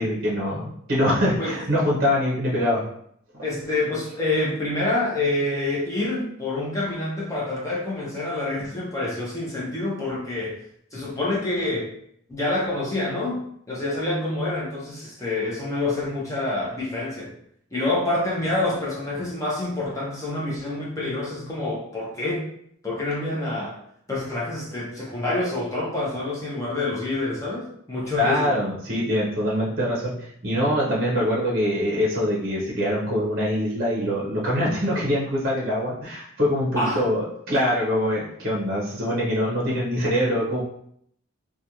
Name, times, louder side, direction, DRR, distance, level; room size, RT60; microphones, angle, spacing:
voice 1, 0.0-2.8 28.2-30.1 30.4-40.6, equal, 45° right, -5 dB, 0.7 m, -24 dB
voice 2, 3.4-10.5 10.9-11.9 12.3-17.3 17.7-22.5 22.8-23.8 24.1-28.5 36.8-37.1, left 2 dB, 15° left, -5 dB, 0.6 m, -27 dB
2.4 x 2.2 x 2.9 m, 0.68 s
head